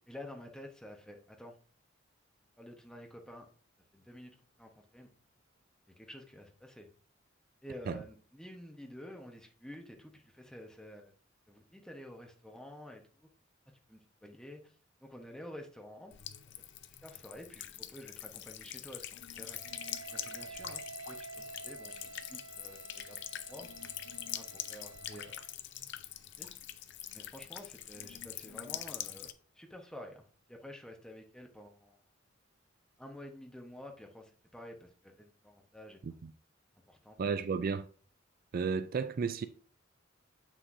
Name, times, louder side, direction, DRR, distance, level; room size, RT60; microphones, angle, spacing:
voice 1, 0.1-1.5 2.6-3.5 3.9-4.3 4.6-5.1 6.0-6.9 7.6-11.1 11.5-13.3 13.9-14.7 15.0-16.1 17.0-19.6 20.1-22.0 22.3-23.7 24.3-25.4 26.4-26.5 27.1-29.3 29.6-32.0 33.0-36.0 36.9-37.2, left 1 dB, 5° left, 1.1 m, -50 dB
Buzz / Water tap faucet / Trickle dribble, 16.1-29.3, left 12 dB, 65° left, 0.5 m, -44 dB
Wind instrument woodwind instrument, 19.4-25.6, right 4 dB, 70° right, 0.8 m, -50 dB
voice 2, 37.2-37.9 38.5-39.5, right 5 dB, 50° right, 0.3 m, -33 dB
8.0 x 6.0 x 2.7 m
head